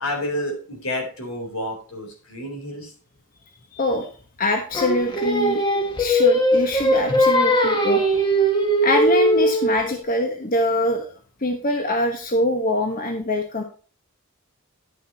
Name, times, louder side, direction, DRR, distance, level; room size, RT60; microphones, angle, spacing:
voice 1, 0.0-2.9, left 1 dB, 80° left, 2 dB, 4.0 m, -29 dB
voice 2, 3.7-4.1 4.4-5.6 6.0-8.0 8.8-11.1 11.4-13.6, left 1 dB, 40° left, 4 dB, 1.2 m, -23 dB
Singing, 4.7-10.0, equal, 20° left, 1.4 m, -20 dB
11.0 x 6.9 x 4.2 m, 0.39 s
head